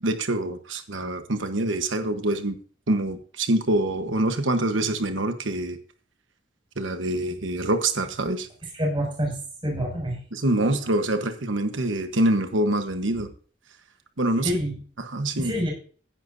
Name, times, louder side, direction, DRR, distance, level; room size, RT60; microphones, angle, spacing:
voice 1, 0.0-2.6 2.9-5.8 6.8-8.5 10.3-13.3 14.2-14.5 15.0-15.6, right 1 dB, 90° right, 8 dB, 1.2 m, -25 dB
voice 2, 8.7-9.3 9.6-10.2 14.4-14.7 15.4-15.7, equal, 25° right, -1 dB, 6.3 m, -26 dB
16.0 x 10.5 x 2.7 m, 0.42 s
head